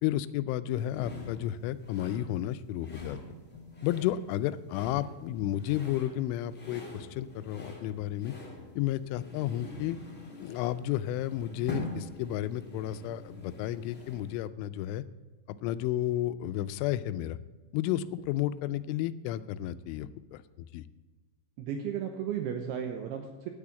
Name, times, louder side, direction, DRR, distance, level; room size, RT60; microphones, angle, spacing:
voice 1, 0.0-3.2 3.8-8.3 8.8-10.0 10.4-15.0 15.5-17.4 17.7-20.8, left 13 dB, 85° left, 13 dB, 3.0 m, -32 dB
sound 1, 0.9-14.4, left 2 dB, 20° left, 2.2 m, -45 dB
voice 2, 21.6-23.5, right 8 dB, 80° right, 5 dB, 2.4 m, -34 dB
9.7 x 8.6 x 8.4 m, 1.3 s
omnidirectional pair, 5.6 m